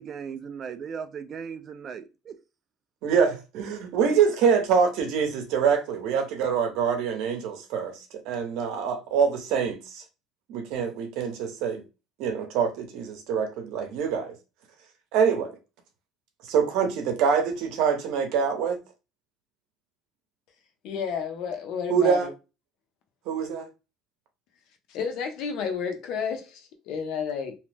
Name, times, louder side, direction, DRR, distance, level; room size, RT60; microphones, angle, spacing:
voice 1, 0.0-2.4, right 6 dB, 35° right, 0.3 m, -37 dB
voice 2, 3.0-10.0 10.5-11.8 12.2-14.3 15.1-15.5 16.4-18.8 21.9-22.3 23.3-23.7, right 6 dB, 70° right, 0.8 m, -25 dB
voice 3, 20.8-22.3 24.9-27.6, left 6 dB, 60° left, 0.7 m, -31 dB
2.8 x 2.0 x 3.3 m
cardioid pair, 150°, 0 cm